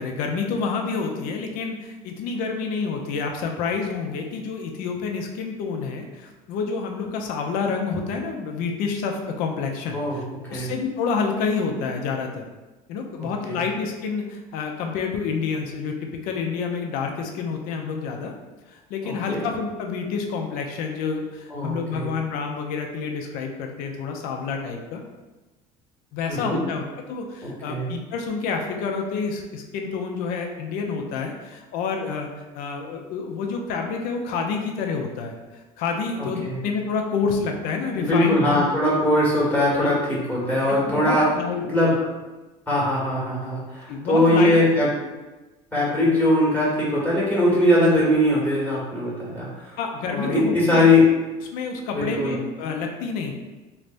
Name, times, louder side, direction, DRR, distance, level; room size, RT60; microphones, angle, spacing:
voice 1, 0.0-10.0 10.5-12.5 12.9-18.3 18.7-25.0 26.1-26.8 27.1-32.3 32.5-35.4 35.8-38.6 39.8-39.9 40.7-41.6 43.9-44.6 46.0-46.1 49.8-50.9 51.5-53.3, left 5 dB, 65° left, 3 dB, 0.5 m, -28 dB
voice 2, 13.2-13.6 19.0-19.4 21.5-22.0 26.3-26.6 27.4-27.8 36.1-36.6 37.9-41.3 41.7-41.9 42.7-44.9 45.7-49.8 50.1-51.1 51.9-52.3, left 1 dB, 10° left, -6 dB, 1.2 m, -21 dB
3.1 x 2.1 x 2.5 m, 1.1 s
supercardioid pair, 100°, 15 cm